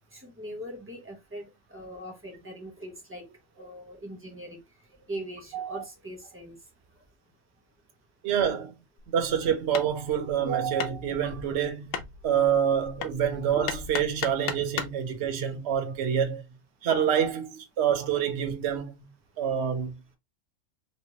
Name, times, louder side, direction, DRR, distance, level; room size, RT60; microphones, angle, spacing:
voice 1, 0.1-3.2 3.6-4.6 5.1-6.6, right 1 dB, 10° right, 0.9 m, -41 dB
voice 2, 5.5-5.8 8.2-8.7 9.1-11.9 12.2-16.4 16.8-18.9 19.4-19.9, right 8 dB, 60° right, 1.0 m, -27 dB
Hammer, 9.0-15.0, left 7 dB, 85° left, 1.0 m, -37 dB
3.2 x 3.1 x 2.7 m
omnidirectional pair, 1.3 m